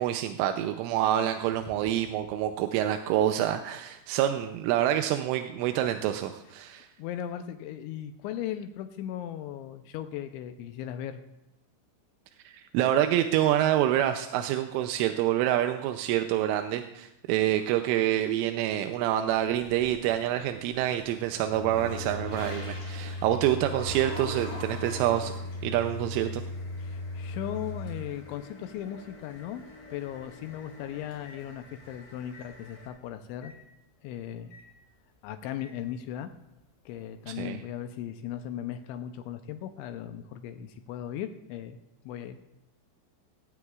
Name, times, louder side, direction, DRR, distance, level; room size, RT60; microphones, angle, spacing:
voice 1, 0.0-6.9 12.5-25.3 25.6-26.4 37.3-37.6, right 12 dB, 85° right, 7 dB, 3.1 m, -27 dB
voice 2, 7.0-11.2 26.8-29.6 29.9-33.5 34.0-34.5 35.2-36.3 36.9-41.8 42.1-42.4, left 10 dB, 85° left, 8 dB, 2.8 m, -37 dB
Microwave oven, 19.4-31.9 32.3-32.5 33.4-33.6 34.5-34.7 35.6-35.8, left 2 dB, 60° left, 3.9 m, -40 dB
sound 1, 19.4-20.1 20.6-32.9, left 1 dB, 40° left, 5.7 m, -46 dB
18.5 x 16.0 x 2.4 m, 0.87 s
omnidirectional pair, 5.5 m